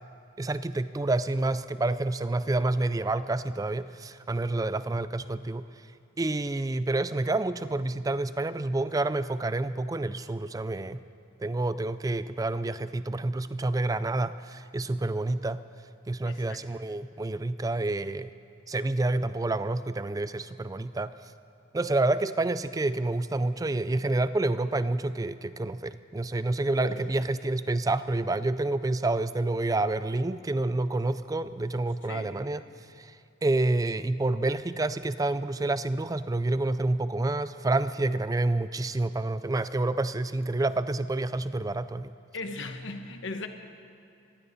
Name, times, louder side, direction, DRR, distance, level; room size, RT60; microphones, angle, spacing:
voice 1, 0.4-5.6 6.2-11.0 11.4-15.6 16.1-18.3 18.7-21.1 21.7-32.6 33.0-33.2 33.4-42.1, right 2 dB, 15° right, 14 dB, 0.3 m, -28 dB
voice 2, 16.2-16.6 26.8-27.0 32.1-32.4 42.3-43.5, left 3 dB, 60° left, 6 dB, 1.2 m, -37 dB
22.5 x 15.5 x 4.1 m, 2.6 s
head